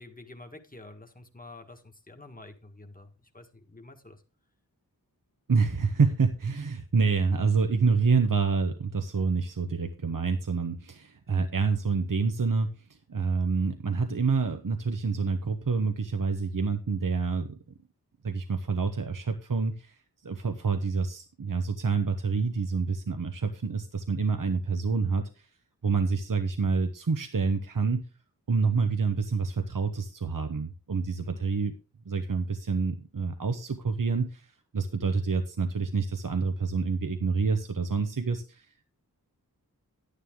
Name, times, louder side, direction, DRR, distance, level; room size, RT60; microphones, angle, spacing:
voice 1, 0.0-4.2 31.2-31.4, left 2 dB, 25° left, 4 dB, 1.6 m, -48 dB
voice 2, 5.5-17.6 18.2-25.5 25.8-28.1 28.5-31.7 32.0-38.7, right 4 dB, 65° right, 6 dB, 1.0 m, -27 dB
11.0 x 10.0 x 3.7 m, 0.32 s
wide cardioid pair, 45°, 36 cm